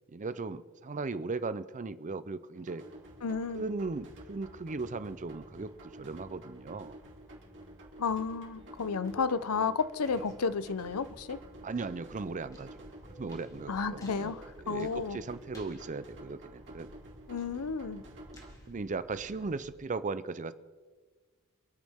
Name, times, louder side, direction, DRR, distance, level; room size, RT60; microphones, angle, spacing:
voice 1, 0.1-2.8 3.5-7.0 11.6-12.7 13.2-14.3 14.6-16.9 18.7-20.5, right 3 dB, 35° right, 0.5 m, -37 dB
sound 1, 2.5-18.5, right 1 dB, 55° right, 2.9 m, -51 dB
sound 2, 2.9-19.7, left 1 dB, 15° left, 2.2 m, -54 dB
voice 2, 3.2-3.6 8.0-11.4 13.7-15.2 17.3-18.0, left 5 dB, 75° left, 0.6 m, -32 dB
27.5 x 9.5 x 3.6 m
head